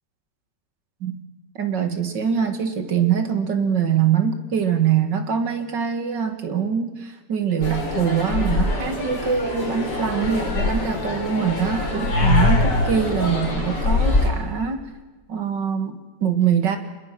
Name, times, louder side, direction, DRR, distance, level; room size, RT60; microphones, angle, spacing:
voice 1, 1.6-14.9 15.3-16.8, right 7 dB, 75° right, 7 dB, 2.5 m, -23 dB
sound 1, 7.6-14.3, left 2 dB, 70° left, 4.6 m, -23 dB
25.5 x 21.5 x 6.0 m, 1.2 s
omnidirectional pair, 2.0 m